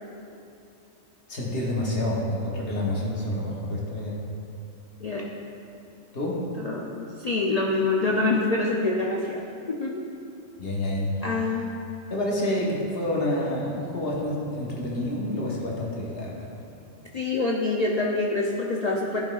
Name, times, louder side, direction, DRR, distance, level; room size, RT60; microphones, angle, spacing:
voice 1, 1.3-4.1 6.1-6.4 10.6-11.1 12.1-16.5, left 1 dB, 50° left, -4 dB, 1.2 m, -28 dB
voice 2, 6.6-10.0 11.2-11.7 17.1-19.2, left 3 dB, 75° left, -2 dB, 0.3 m, -26 dB
10.5 x 5.3 x 2.4 m, 2.7 s
omnidirectional pair, 1.3 m